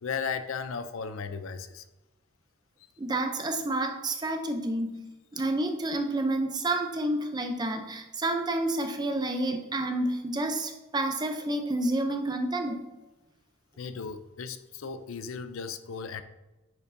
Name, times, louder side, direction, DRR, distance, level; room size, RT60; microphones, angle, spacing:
voice 1, 0.0-1.9 13.8-16.2, left 5 dB, 75° left, 11 dB, 0.5 m, -36 dB
voice 2, 3.0-5.0 5.3-12.8, right 1 dB, 20° right, 5 dB, 0.6 m, -29 dB
9.6 x 4.7 x 2.6 m, 1.1 s
head